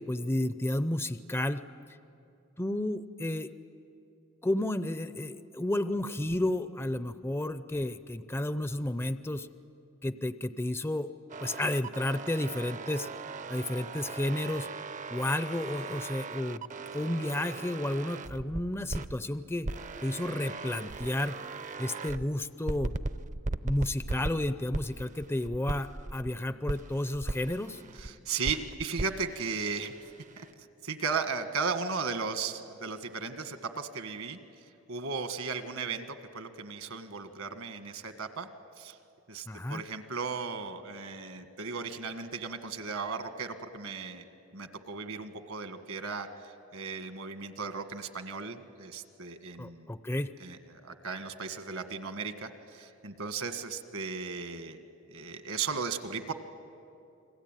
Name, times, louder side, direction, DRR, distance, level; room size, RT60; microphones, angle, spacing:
voice 1, 0.0-1.6 2.6-3.5 4.4-9.5 10.0-11.1 11.4-13.1 13.5-14.7 15.1-16.7 16.9-19.7 20.0-21.4 21.8-22.9 23.6-27.8 39.5-39.8 49.6-50.3, left 1 dB, 10° left, 12 dB, 0.5 m, -32 dB
sound 1, 11.3-19.1 19.6-22.3 22.7-26.3 26.7-28.1 28.4-30.5, right 3 dB, 35° right, 0.6 m, -38 dB
voice 2, 28.0-30.0 30.4-30.5 30.8-34.4 34.9-38.5 38.8-39.0 39.3-44.2 44.5-49.9 50.4-54.8 55.1-56.3, right 5 dB, 75° right, 8 dB, 1.7 m, -36 dB
30.0 x 21.5 x 9.1 m, 2.7 s
head